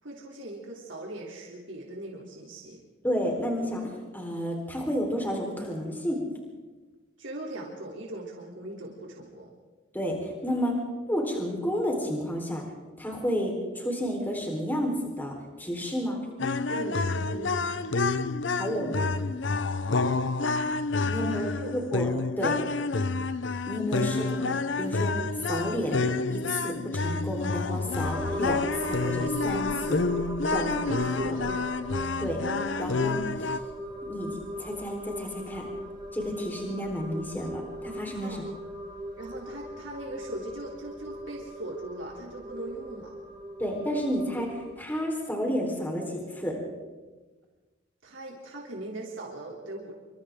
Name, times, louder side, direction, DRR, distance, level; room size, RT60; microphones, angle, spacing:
voice 1, 0.0-2.8 7.2-9.5 16.7-17.8 21.0-21.8 24.1-24.4 30.6-31.7 38.2-38.4 39.2-43.1 48.0-49.9, right 1 dB, 75° right, -2 dB, 3.3 m, -39 dB
voice 2, 3.0-6.2 9.9-10.8 11.1-12.6 13.0-16.2 18.5-19.1 21.0-22.1 22.4-22.8 23.7-24.5 24.8-25.1 25.5-26.0 26.3-30.0 30.5-30.7 32.2-32.4 32.8-33.6 34.1-35.7 36.1-38.4 43.6-46.5, equal, 10° left, 0 dB, 4.2 m, -31 dB
sound 1, 16.4-33.6, left 3 dB, 70° left, 0.8 m, -29 dB
sound 2, 28.0-44.7, equal, 20° right, 2.4 m, -39 dB
28.0 x 25.5 x 3.8 m, 1.3 s
head